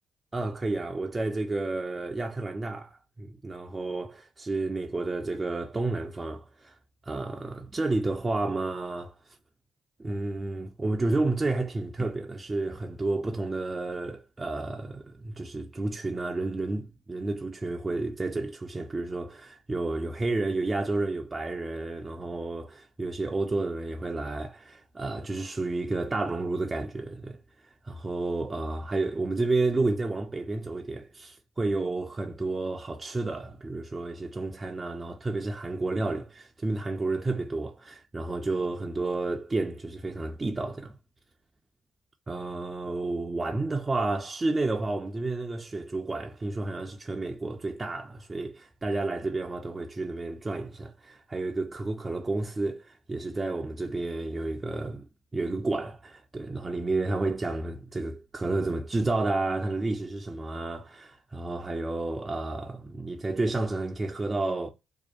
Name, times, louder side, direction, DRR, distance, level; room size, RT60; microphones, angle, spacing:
voice 1, 0.3-6.8 7.0-9.4 10.0-27.4 27.8-41.0 42.3-55.1 55.3-64.7, right 2 dB, 30° right, 0.3 m, -31 dB
2.6 x 2.1 x 2.3 m
cardioid pair, 70°, 0 cm